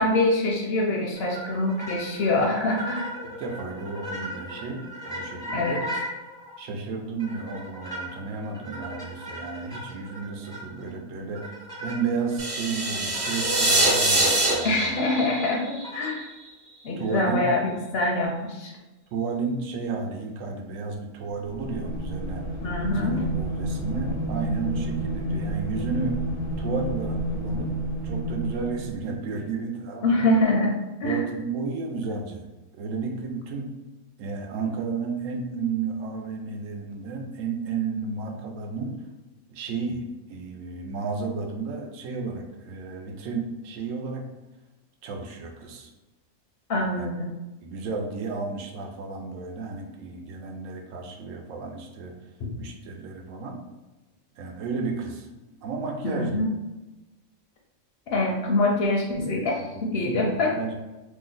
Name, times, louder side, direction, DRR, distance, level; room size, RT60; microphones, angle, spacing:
voice 1, 0.0-3.0 5.5-5.8 14.6-16.2 16.8-18.7 22.6-23.3 30.0-31.3 46.7-47.4 52.4-52.5 56.0-56.5 58.1-60.6, left 2 dB, 65° left, 0 dB, 0.7 m, -25 dB
sound 1, 1.1-6.6 7.2-10.9 11.3-12.4 13.1-15.1 15.8-16.3, equal, 5° left, 0.5 m, -37 dB
voice 2, 3.2-5.9 6.6-15.0 17.0-17.5 19.1-22.5 23.0-26.2 26.6-27.7 28.0-30.3 31.0-32.5 32.7-33.7 34.2-39.0 39.5-40.0 40.3-44.3 45.0-45.9 47.0-47.1 47.6-52.1 52.6-53.6 54.4-55.3 55.6-56.4 59.6-60.8, right 4 dB, 85° right, 2 dB, 1.0 m, -32 dB
sound 2, 12.4-16.5, right 2 dB, 50° right, 0.9 m, -24 dB
sound 3, 21.5-29.1, right 1 dB, 85° left, 1.2 m, -30 dB
2.8 x 2.1 x 3.7 m, 1.1 s
omnidirectional pair, 1.3 m